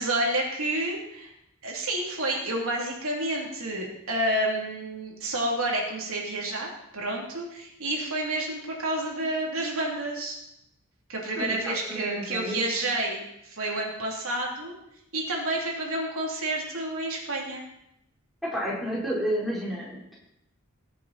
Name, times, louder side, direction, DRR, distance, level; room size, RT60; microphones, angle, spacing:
voice 1, 0.0-1.3 1.6-6.7 6.9-10.4 11.1-14.7 15.1-17.6, right 1 dB, 80° right, -1 dB, 3.0 m, -29 dB
voice 2, 11.4-12.6 18.4-20.2, equal, ahead, -7 dB, 3.9 m, -31 dB
19.5 x 7.4 x 4.2 m, 0.83 s
head